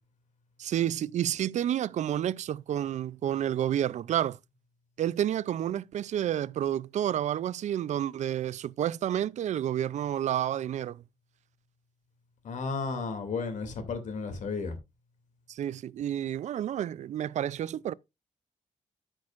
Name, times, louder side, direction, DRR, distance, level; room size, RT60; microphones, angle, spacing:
voice 1, 0.6-4.4 5.0-11.0 15.5-17.9, right 11 dB, 65° right, 0.4 m, -30 dB
voice 2, 12.4-14.8, left 4 dB, 75° left, 2.5 m, -33 dB
14.0 x 6.3 x 2.5 m
wide cardioid pair, 130°, 13 cm